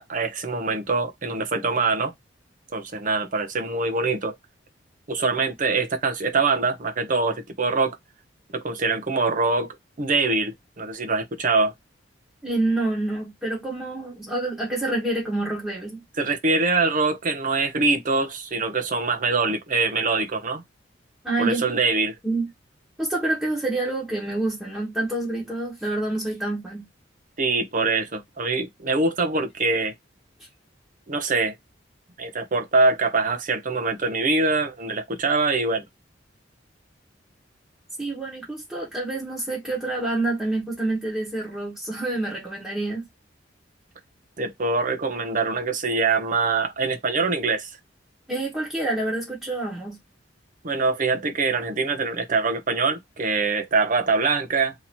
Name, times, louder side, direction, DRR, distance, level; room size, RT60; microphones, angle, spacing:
voice 1, 0.0-2.1 2.7-4.3 5.1-8.0 8.5-9.7 10.0-11.7 16.2-20.6 21.4-22.2 27.4-29.9 31.1-31.5 32.2-35.8 44.4-47.7 50.6-54.7, right 3 dB, 45° right, 0.7 m, -24 dB
voice 2, 12.4-16.0 21.2-21.7 22.2-22.5 23.0-26.8 38.0-43.1 48.3-50.0, right 2 dB, 5° right, 1.2 m, -27 dB
2.9 x 2.7 x 4.2 m
head